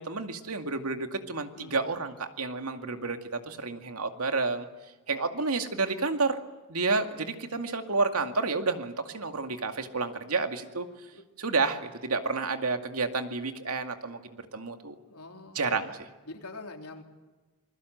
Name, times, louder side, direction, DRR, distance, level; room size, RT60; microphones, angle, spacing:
voice 1, 0.0-4.7 5.1-6.4 6.7-10.9 11.4-15.0 15.5-16.1, right 3 dB, 80° right, 6 dB, 2.3 m, -30 dB
voice 2, 15.1-15.6 16.3-17.0, left 2 dB, 90° left, 3 dB, 3.7 m, -44 dB
27.0 x 21.5 x 8.0 m, 1.2 s
head